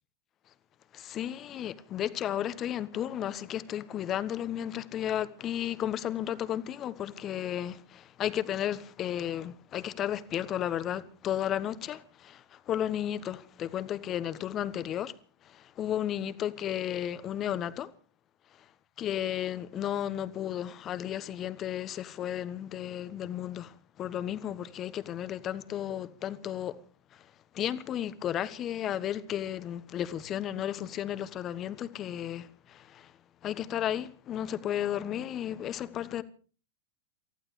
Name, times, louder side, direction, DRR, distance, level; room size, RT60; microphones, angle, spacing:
voice 1, 0.9-15.1 15.5-17.9 19.0-26.8 27.5-33.1 33.4-36.2, left 10 dB, 30° left, 1.2 m, -33 dB
29.0 x 14.5 x 3.2 m
figure-of-eight pair, 95°, 0 cm